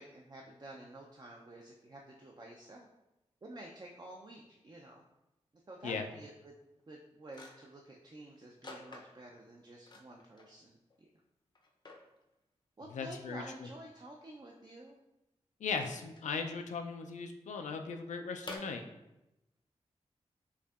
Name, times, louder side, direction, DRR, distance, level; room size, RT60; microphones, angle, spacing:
voice 1, 0.0-2.9 3.4-5.0 5.7-6.5 6.9-11.1 12.8-15.0, right 1 dB, 35° right, -1 dB, 0.4 m, -51 dB
sound 1, 6.8-6.9 7.3-7.8 8.6-9.4 9.8-10.6 10.9-11.0 11.5-12.1 13.5-13.6 15.7-16.3 18.5-18.6, left 2 dB, 40° left, 0.5 m, -49 dB
voice 2, 12.9-13.4 15.6-18.8, left 5 dB, 85° left, 5 dB, 0.4 m, -38 dB
4.6 x 2.6 x 2.4 m, 0.94 s
cardioid pair, 50°, 12 cm